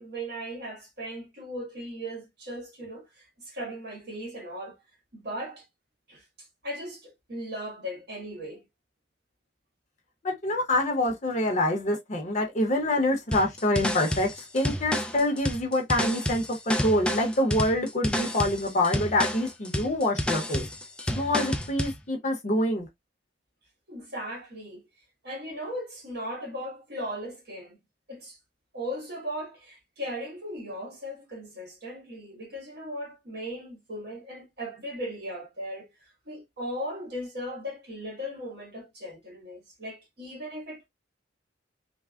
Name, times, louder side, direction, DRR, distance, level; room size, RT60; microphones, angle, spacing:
voice 1, 0.0-4.8 5.1-5.6 6.1-8.6 23.9-24.9 25.2-27.8 28.1-28.4 28.7-35.9 36.3-40.9, equal, 60° right, 1.3 m, -37 dB
voice 2, 10.2-20.7 21.1-22.9, left 1 dB, 40° left, 0.7 m, -26 dB
sound 1, 13.3-22.0, left 1 dB, 5° left, 0.3 m, -30 dB
3.3 x 2.1 x 2.3 m
head